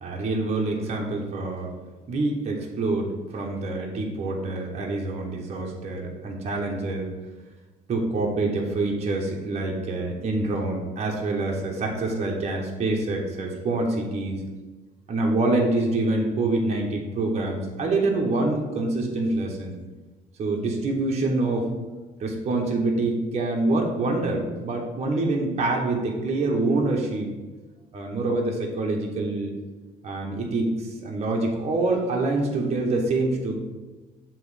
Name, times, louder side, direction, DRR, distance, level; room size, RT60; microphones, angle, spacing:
voice 1, 0.0-1.7 2.1-7.1 7.9-14.4 15.1-19.8 20.4-21.7 22.2-27.3 27.9-29.5 30.0-33.5, right 2 dB, 40° right, -1 dB, 1.0 m, -26 dB
6.9 x 3.1 x 4.8 m, 1.2 s
cardioid pair, 110°, 17 cm